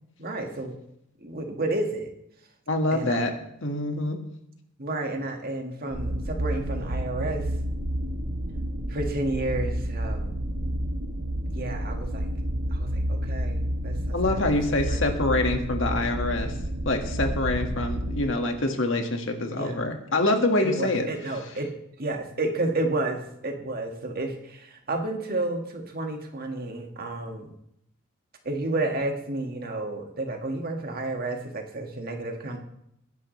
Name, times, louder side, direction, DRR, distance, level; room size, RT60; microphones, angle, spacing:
voice 1, 0.2-0.8 1.2-2.1 2.9-3.2 4.8-7.5 8.9-10.4 11.5-12.3 12.7-15.1 19.5-19.9 20.6-21.7 22.0-27.5 28.4-32.6, right 2 dB, 45° right, 3 dB, 1.8 m, -31 dB
voice 2, 2.7-3.3 3.6-4.2 14.1-16.5 16.9-21.1, left 2 dB, 65° left, 4 dB, 1.8 m, -25 dB
sound 1, 5.9-18.2, equal, 85° right, 1.5 m, -30 dB
21.5 x 10.5 x 3.3 m, 0.77 s
head